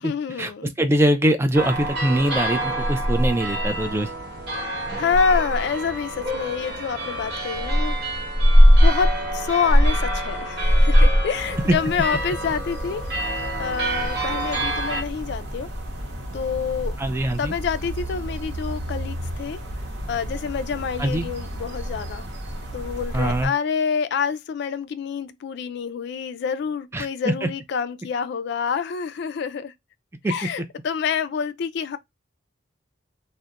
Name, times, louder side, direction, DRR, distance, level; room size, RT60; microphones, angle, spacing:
voice 1, 0.0-0.7 4.6-8.0 8.8-13.0 13.6-15.7 16.3-17.0 17.4-19.6 20.1-22.2 22.7-29.7 30.3-32.0, left 6 dB, 65° left, 0.3 m, -27 dB
voice 2, 0.8-4.1 11.7-11.8 17.0-17.5 21.0-21.3 23.1-23.5 26.9-27.5 30.2-30.3, right 1 dB, 15° right, 0.3 m, -22 dB
sound 1, 1.5-15.0, equal, 60° right, 1.0 m, -21 dB
sound 2, 11.3-23.5, equal, 90° right, 0.8 m, -33 dB
2.3 x 2.1 x 2.8 m
head